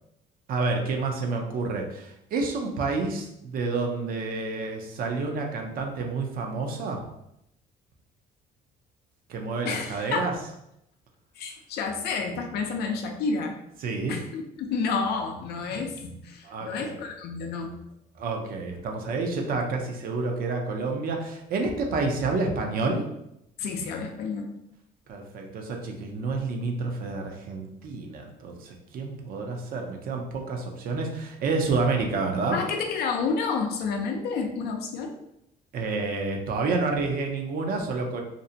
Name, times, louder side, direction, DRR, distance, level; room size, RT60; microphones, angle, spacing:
voice 1, 0.5-7.0 9.3-10.3 13.8-14.2 16.4-17.0 18.2-23.0 25.1-32.6 35.7-38.2, right 3 dB, 60° right, 2 dB, 0.5 m, -29 dB
voice 2, 9.7-10.2 11.4-13.6 14.1-17.7 23.6-24.5 32.5-35.2, left 4 dB, 70° left, 4 dB, 0.5 m, -30 dB
2.5 x 2.1 x 2.6 m, 0.81 s
cardioid pair, 110°, 17 cm